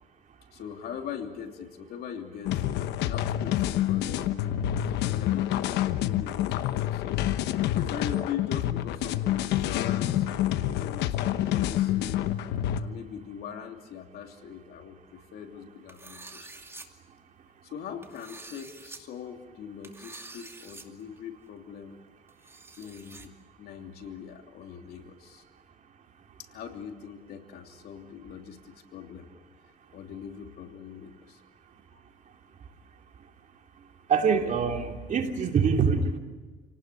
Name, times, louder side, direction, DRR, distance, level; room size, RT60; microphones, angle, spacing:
voice 1, 0.5-2.7 3.0-7.3 7.7-10.3 10.7-12.2 12.8-16.6 17.7-22.0 22.8-25.4 26.4-29.3 29.9-31.4 31.9-32.0, left 8 dB, 70° left, 4 dB, 3.0 m, -41 dB
sound 1, 2.5-12.8, left 12 dB, 85° left, 1.0 m, -27 dB
sound 2, 15.9-16.9 18.0-19.0 19.8-20.8 21.2-21.3 22.3-23.3, right 2 dB, 15° right, 2.5 m, -47 dB
voice 2, 34.1-36.2, right 6 dB, 50° right, 3 dB, 3.1 m, -24 dB
28.0 x 18.5 x 9.8 m, 1.3 s
cardioid pair, 110°, 17 cm